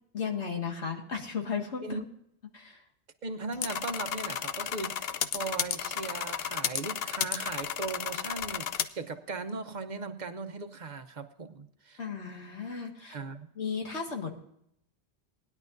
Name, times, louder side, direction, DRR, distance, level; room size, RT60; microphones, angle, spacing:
voice 1, 0.1-2.0 2.5-2.8 12.0-13.2 13.6-14.3, left 6 dB, 90° left, 2 dB, 2.1 m, -35 dB
voice 2, 3.2-12.0 13.1-13.5, right 3 dB, 45° right, 7 dB, 0.9 m, -38 dB
sound 1, 3.5-8.8, left 8 dB, 65° left, 0.8 m, -33 dB
19.5 x 11.0 x 2.6 m, 0.73 s
omnidirectional pair, 1.1 m